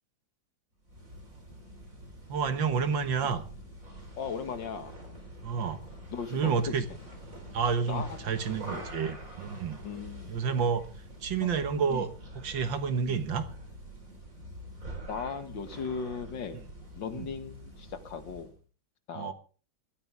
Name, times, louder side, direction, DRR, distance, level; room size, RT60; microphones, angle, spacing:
sound 1, 0.8-18.6, right 1 dB, 40° right, 4.8 m, -46 dB
voice 1, 2.3-3.4 5.4-5.8 6.3-6.8 7.5-9.8 10.3-10.9 11.2-12.1 12.4-13.5 17.2-17.3 19.1-19.3, right 6 dB, 75° right, 9 dB, 2.1 m, -29 dB
voice 2, 4.2-4.9 6.1-6.8 7.9-8.1 8.7-8.9 9.8-10.3 11.4-11.6 11.9-12.0 13.0-13.2 15.1-16.6 16.9-18.5 19.1-19.3, left 6 dB, 65° left, 8 dB, 2.3 m, -37 dB
21.0 x 13.5 x 3.5 m, 0.37 s
omnidirectional pair, 2.1 m